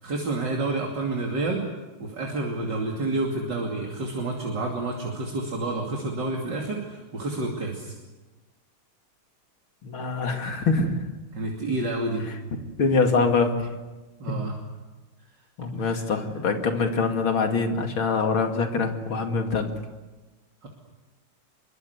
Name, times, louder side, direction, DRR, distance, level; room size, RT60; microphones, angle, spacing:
voice 1, 0.0-1.6 2.0-7.9 11.3-12.2 14.2-14.5 15.8-16.2 20.6-20.7, right 2 dB, 55° right, 0 dB, 3.4 m, -29 dB
voice 2, 9.8-11.0 12.8-13.7 14.3-14.4 15.6-19.7, left 4 dB, 75° left, 4 dB, 3.2 m, -24 dB
25.5 x 23.0 x 8.2 m, 1.2 s
omnidirectional pair, 2.3 m